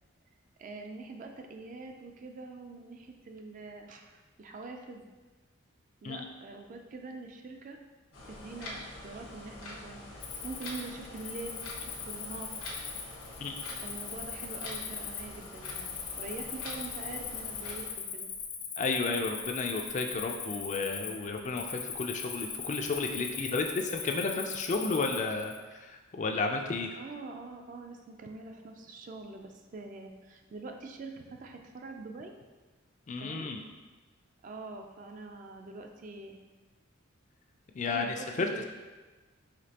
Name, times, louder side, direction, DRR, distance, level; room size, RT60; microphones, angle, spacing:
voice 1, 0.6-5.0 6.0-7.8 8.3-10.0 10.4-11.6 12.0-12.5 13.8-17.8 18.1-18.3 27.0-32.3 33.2-33.5 34.4-36.4 37.8-38.6, right 3 dB, 40° right, 4 dB, 0.3 m, -44 dB
sound 1, 8.1-17.9, left 1 dB, 90° left, 1.0 m, -45 dB
Cricket, 10.2-25.6, left 6 dB, 75° left, 0.6 m, -40 dB
voice 2, 13.4-13.8 18.8-27.0 33.1-33.6 37.7-38.6, left 3 dB, 35° left, 3 dB, 0.3 m, -32 dB
5.0 x 3.2 x 2.8 m, 1.3 s
head